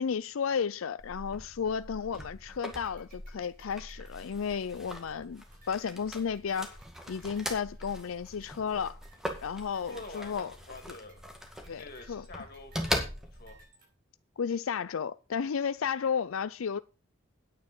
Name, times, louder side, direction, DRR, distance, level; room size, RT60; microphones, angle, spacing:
voice 1, 0.0-6.8 7.1-9.0 9.4-10.5 11.7-12.2 14.4-16.8, left 6 dB, 85° left, 0.5 m, -33 dB
sound 1, 1.0-13.6, equal, ahead, 2.0 m, -41 dB
sound 2, 2.8-13.9, right 3 dB, 45° right, 5.3 m, -63 dB
voice 2, 9.9-11.2 11.7-12.9 13.3-13.6, left 2 dB, 50° left, 2.9 m, -47 dB
9.7 x 8.8 x 5.4 m
head